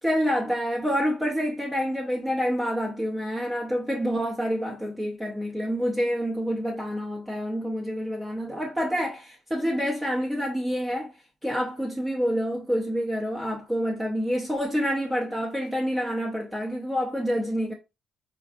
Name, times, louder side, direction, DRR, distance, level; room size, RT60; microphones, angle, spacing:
voice 1, 0.0-11.1 11.4-17.7, equal, 10° right, 0.7 m, -27 dB
3.9 x 2.4 x 2.5 m
cardioid pair, 90°, 0 cm